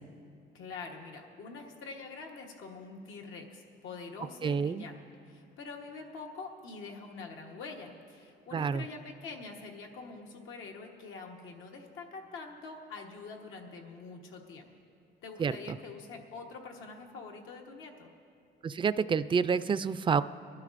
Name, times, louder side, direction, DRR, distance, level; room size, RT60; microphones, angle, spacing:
voice 1, 0.5-14.7 15.2-18.1, left 4 dB, 90° left, 1 dB, 1.2 m, -45 dB
voice 2, 4.4-4.8 8.5-8.9 15.4-15.8 18.6-20.2, right 6 dB, 25° right, 14 dB, 0.3 m, -28 dB
22.0 x 12.0 x 2.5 m, 2.6 s
cardioid pair, 90°, 20 cm